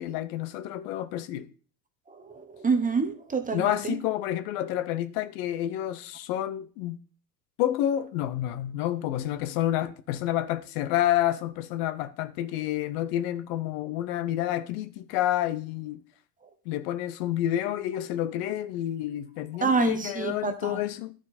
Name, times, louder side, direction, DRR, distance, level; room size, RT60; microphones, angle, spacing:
voice 1, 0.0-1.5 3.5-7.0 7.6-16.0 16.7-21.1, left 13 dB, 65° left, 0.9 m, -29 dB
voice 2, 2.1-4.0 19.6-20.8, right 5 dB, 15° right, 1.1 m, -27 dB
11.5 x 4.7 x 4.2 m
hypercardioid pair, 95°, 49 cm